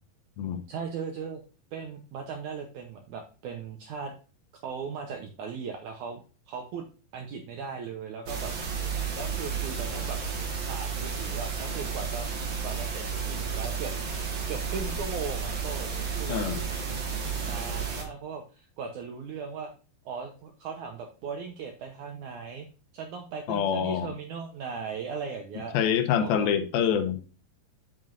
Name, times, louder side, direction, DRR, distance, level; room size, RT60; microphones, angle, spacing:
voice 1, 0.7-1.4 1.7-4.1 4.6-6.2 6.5-6.9 7.1-8.5 9.1-10.2 10.7-12.3 12.6-13.9 14.5-15.9 16.2-16.4 17.4-19.7 20.0-22.7 22.9-25.8 26.0-26.5, right 5 dB, 75° right, 4 dB, 1.8 m, -38 dB
sound 1, 8.3-18.0, right 6 dB, 60° right, 1.3 m, -32 dB
voice 2, 16.3-16.6 23.5-24.1 25.7-27.2, left 8 dB, 75° left, 8 dB, 2.5 m, -26 dB
7.7 x 7.6 x 2.5 m, 0.35 s
omnidirectional pair, 4.5 m